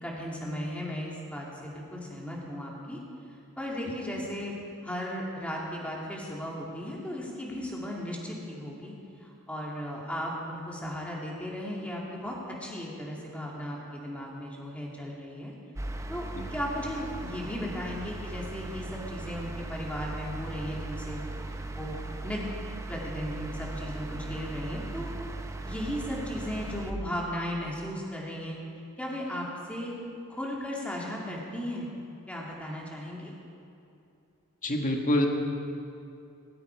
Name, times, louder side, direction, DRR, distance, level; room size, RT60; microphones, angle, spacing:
voice 1, 0.0-3.0 3.6-4.6 4.8-8.9 9.2-15.5 16.1-21.2 21.7-22.4 22.9-25.1 25.6-28.6 29.0-30.0 30.3-31.9 32.3-33.3, equal, 5° left, -3 dB, 2.6 m, -36 dB
sound 1, 15.8-26.9, right 2 dB, 15° right, 0.7 m, -38 dB
voice 2, 34.6-35.3, left 1 dB, 35° left, 2 dB, 1.6 m, -25 dB
18.5 x 15.0 x 4.7 m, 2.6 s
head